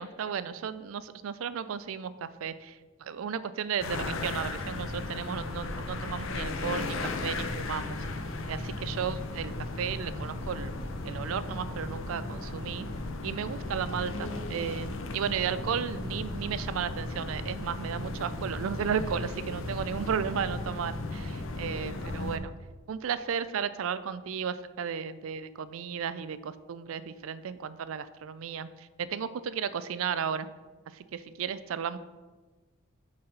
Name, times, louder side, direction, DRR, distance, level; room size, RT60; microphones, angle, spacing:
voice 1, 0.0-8.0 8.5-10.7 11.0-12.9 13.2-22.5 22.9-30.5 30.9-32.0, right 7 dB, 75° right, 14 dB, 0.4 m, -34 dB
sound 1, 3.8-22.4, left 2 dB, 65° left, 0.7 m, -36 dB
6.7 x 4.1 x 5.3 m, 1.3 s
head